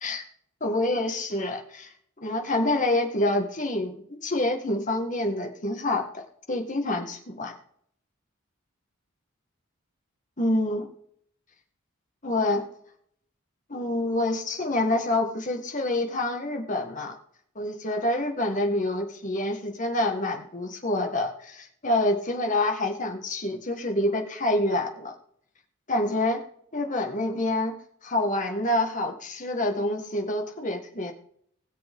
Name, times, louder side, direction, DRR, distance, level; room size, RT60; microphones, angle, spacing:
voice 1, 0.6-1.9 2.2-6.2 6.5-7.5 10.4-10.9 12.2-12.6 13.7-17.1 17.6-25.1 25.9-26.4 26.7-27.7 28.0-31.1, left 1 dB, 35° left, 3 dB, 2.0 m, -27 dB
20.5 x 6.8 x 3.8 m, 0.65 s
head